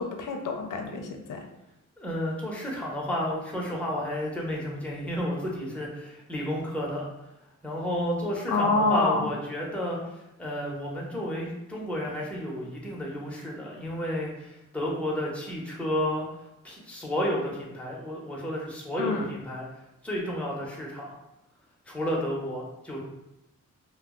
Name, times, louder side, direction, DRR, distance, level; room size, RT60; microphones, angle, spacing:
voice 1, 0.0-1.4 8.5-9.3 19.0-19.3, left 3 dB, 80° left, 4 dB, 0.5 m, -27 dB
voice 2, 2.0-7.1 7.6-16.2 16.6-19.6 20.0-21.2 21.9-23.0, equal, 5° left, -3 dB, 0.7 m, -31 dB
2.3 x 2.0 x 3.6 m, 0.91 s
cardioid pair, 70°, 31 cm